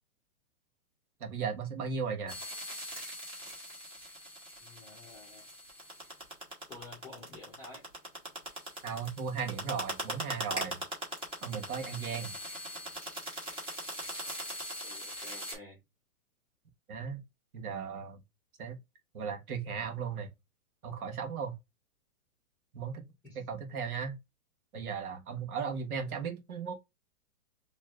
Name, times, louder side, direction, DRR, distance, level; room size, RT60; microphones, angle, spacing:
voice 1, 1.2-2.4 8.8-10.8 11.4-12.3 16.9-17.2 17.5-18.2 18.6-18.8 19.1-20.3 20.8-21.5 22.7-23.0 23.3-24.2 24.7-26.7, right 6 dB, 90° right, 1.4 m, -36 dB
sound 1, 2.3-15.5, equal, 10° right, 1.1 m, -41 dB
voice 2, 4.6-5.4 6.7-7.8 14.8-15.8 23.2-23.5, left 3 dB, 5° left, 0.8 m, -51 dB
4.6 x 3.1 x 2.4 m
hypercardioid pair, 155°, 43 cm